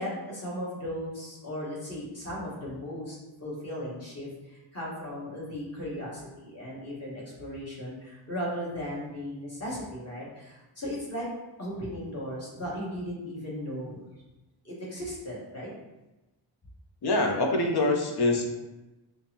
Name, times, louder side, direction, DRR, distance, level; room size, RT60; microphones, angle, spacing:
voice 1, 0.0-11.3 11.6-14.0 14.6-15.7, equal, 30° left, -6 dB, 1.4 m, -36 dB
voice 2, 17.0-18.5, left 2 dB, 55° left, 3 dB, 0.7 m, -24 dB
5.0 x 2.1 x 2.8 m, 1.1 s
wide cardioid pair, 100°, 46 cm